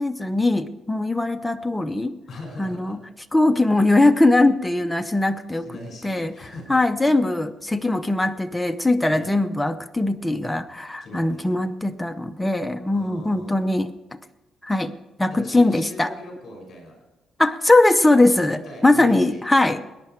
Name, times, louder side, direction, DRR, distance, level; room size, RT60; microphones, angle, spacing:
voice 1, 0.0-2.1 2.6-3.0 3.3-5.6 6.0-6.3 6.7-13.9 14.6-14.9 15.2-16.1 17.4-19.8, left 2 dB, 10° left, 8 dB, 0.7 m, -20 dB
voice 2, 2.3-3.0 5.6-6.8 9.1-9.4 11.0-11.7 12.9-13.5 15.3-17.0 18.5-19.4, left 1 dB, 45° left, 1 dB, 5.9 m, -40 dB
20.0 x 10.5 x 4.6 m, 1.1 s
cardioid pair, 115°, 0 cm